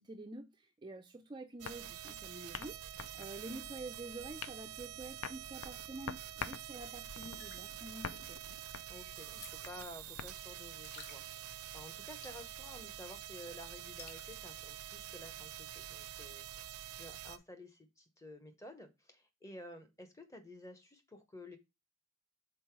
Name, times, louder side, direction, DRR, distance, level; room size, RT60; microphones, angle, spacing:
voice 1, 0.0-8.4, right 2 dB, 20° right, 0.4 m, -48 dB
sound 1, 1.6-10.3, left 6 dB, 75° left, 0.5 m, -48 dB
sound 2, 1.6-17.4, right 11 dB, 85° right, 0.5 m, -47 dB
sound 3, 7.2-14.7, left 5 dB, 45° left, 1.0 m, -59 dB
voice 2, 8.9-21.6, left 1 dB, 15° left, 0.8 m, -52 dB
5.4 x 4.1 x 4.5 m
head